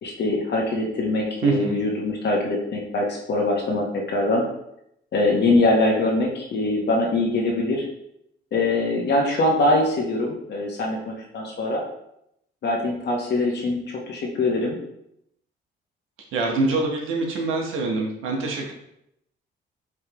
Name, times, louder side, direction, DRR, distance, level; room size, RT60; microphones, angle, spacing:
voice 1, 0.0-4.4 5.1-7.8 8.5-11.8 12.6-13.8 14.1-14.8, left 2 dB, 60° left, -1 dB, 1.0 m, -23 dB
voice 2, 1.4-1.8 16.3-18.7, right 3 dB, 90° right, 1 dB, 1.0 m, -24 dB
4.8 x 3.2 x 2.9 m, 0.78 s
cardioid pair, 90°, 20 cm